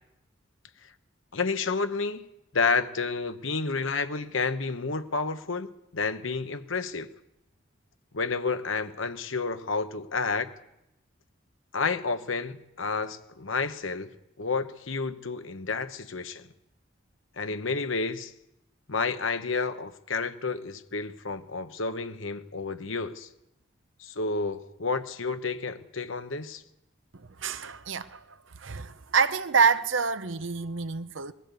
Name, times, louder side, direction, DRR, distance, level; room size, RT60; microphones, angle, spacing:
voice 1, 1.3-2.2 2.5-7.1 8.1-10.5 11.7-14.1 14.4-16.4 17.4-18.3 18.9-23.3 24.0-26.6, left 4 dB, 80° left, 1.1 m, -30 dB
voice 2, 27.4-28.2 28.6-31.3, right 5 dB, 75° right, 0.9 m, -26 dB
20.0 x 15.5 x 8.3 m
head